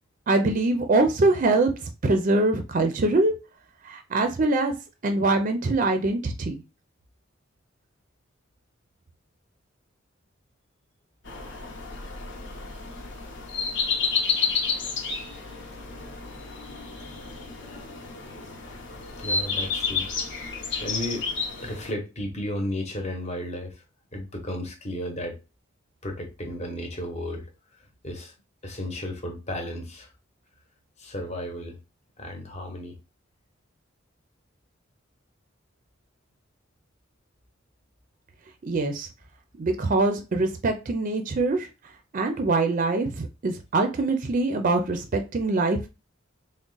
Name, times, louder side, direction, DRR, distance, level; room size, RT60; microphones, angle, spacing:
voice 1, 0.3-3.3 3.8-4.7 5.0-6.6 38.6-39.1 39.6-41.7 42.1-45.8, right 2 dB, 40° right, 0.4 m, -23 dB
sound 1, 11.3-21.9, left 5 dB, 65° left, 0.8 m, -31 dB
voice 2, 19.2-20.1 20.8-21.3 21.6-23.7 24.1-25.4 26.0-27.4 28.0-28.3 28.6-30.1 31.0-31.8 32.2-33.0, left 1 dB, 35° left, 0.9 m, -33 dB
3.6 x 2.1 x 3.8 m
head